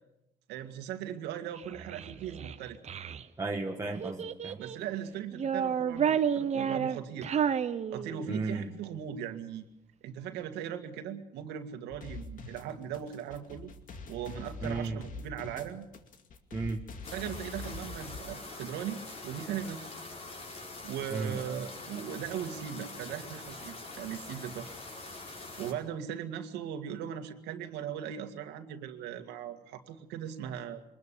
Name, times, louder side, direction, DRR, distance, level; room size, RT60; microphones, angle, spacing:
voice 1, 0.5-2.8 4.6-7.3 7.9-9.6 10.0-13.7 14.1-15.9 17.1-19.0 19.2-19.9 20.8-24.8 25.6-30.8, right 9 dB, 85° right, 6 dB, 2.0 m, -39 dB
Child speech kid speaking, 1.6-3.2 4.0-4.9 5.3-8.5, right 8 dB, 40° right, 1.1 m, -31 dB
voice 2, 3.4-4.6 8.3-8.7 14.6-15.0 16.5-16.8 21.1-21.4, right 3 dB, 20° right, 2 dB, 1.4 m, -34 dB
sound 1, 11.9-18.2, left 3 dB, 55° left, 2.3 m, -44 dB
sound 2, 17.0-25.7, left 3 dB, 35° left, 5.1 m, -44 dB
22.5 x 20.5 x 7.0 m, 0.85 s
cardioid pair, 110°, 17 cm